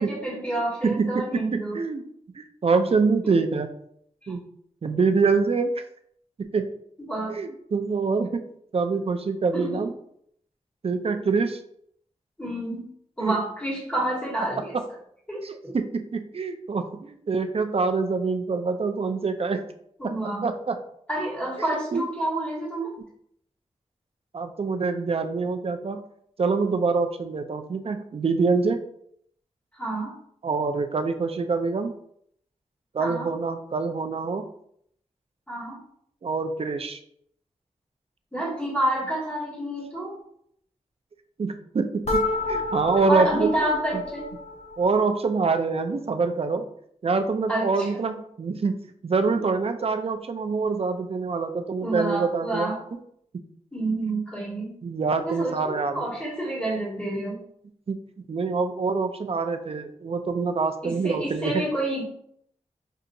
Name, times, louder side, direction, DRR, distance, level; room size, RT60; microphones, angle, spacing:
voice 1, 0.0-1.8 7.0-7.4 9.5-9.8 12.4-12.9 13.2-14.7 15.3-15.8 20.0-20.4 21.1-22.9 29.7-30.1 33.0-33.3 35.5-35.8 38.3-40.2 43.1-44.3 47.5-47.9 51.8-52.8 53.7-54.7 55.2-57.4 60.8-62.0, right 1 dB, 10° left, -5 dB, 1.6 m, -29 dB
voice 2, 0.8-2.0 2.4-3.7 4.3-4.4 4.8-5.8 6.5-6.7 7.3-8.4 8.7-9.9 10.8-11.6 13.2-13.4 15.4-19.6 20.0-20.2 20.4-20.8 21.9-22.1 24.3-26.0 26.4-28.8 30.4-31.9 32.9-34.4 36.2-37.0 41.4-44.0 44.8-46.7 47.0-48.8 49.0-52.7 54.8-56.0 57.9-61.6, right 4 dB, 50° right, 7 dB, 0.4 m, -25 dB
sound 1, 42.1-45.0, left 2 dB, 55° left, 0.6 m, -29 dB
5.4 x 2.8 x 2.6 m, 0.69 s
wide cardioid pair, 115°, 13 cm